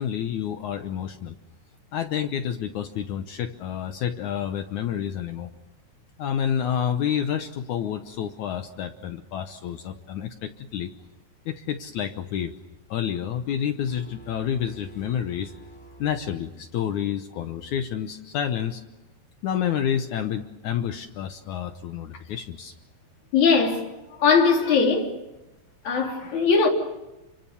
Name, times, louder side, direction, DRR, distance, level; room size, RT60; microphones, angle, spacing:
voice 1, 0.0-1.4 1.9-5.5 6.2-10.9 11.4-12.5 12.9-15.5 16.0-18.8 19.4-22.7, left 9 dB, 85° left, 1.7 m, -29 dB
sound 1, 13.8-16.8, right 2 dB, 25° left, 8.4 m, -48 dB
voice 2, 23.3-23.9 24.2-25.2 25.8-26.7, left 5 dB, 45° left, 4.6 m, -20 dB
29.0 x 25.0 x 7.0 m
omnidirectional pair, 4.9 m